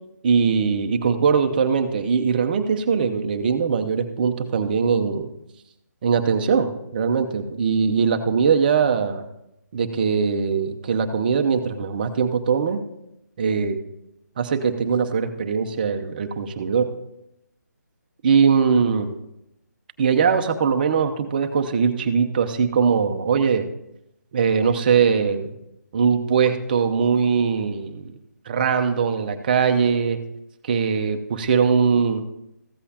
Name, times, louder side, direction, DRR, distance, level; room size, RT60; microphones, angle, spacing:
voice 1, 0.2-5.3 6.0-9.2 9.7-12.8 13.4-13.8 14.4-16.9 18.2-19.1 20.0-23.7 24.3-25.5 25.9-28.1 28.5-30.2 30.6-32.2, right 6 dB, 30° right, 6 dB, 0.7 m, -21 dB
14.5 x 8.0 x 2.8 m, 0.86 s
figure-of-eight pair, 160°, 10 cm